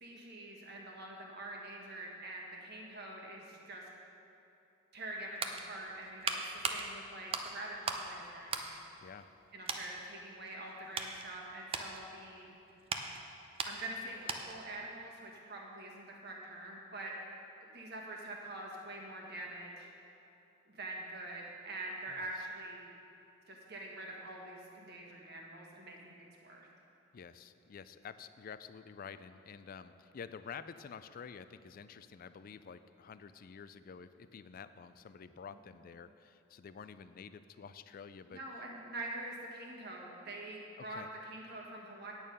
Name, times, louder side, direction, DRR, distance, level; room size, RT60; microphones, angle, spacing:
voice 1, 0.0-3.9 4.9-8.6 9.5-12.4 13.6-17.1 17.6-19.9 20.7-22.9 23.5-26.7 35.5-35.6 38.3-42.1, right 2 dB, 55° right, -1 dB, 1.6 m, -45 dB
sound 1, 5.0-8.1 8.4-9.4 9.7-9.9 10.5-14.7 15.0-15.2, right 4 dB, 30° right, 0.6 m, -40 dB
voice 2, 27.1-38.4 40.8-41.1, left 6 dB, 45° left, 12 dB, 0.3 m, -49 dB
9.0 x 8.6 x 5.4 m, 2.9 s
head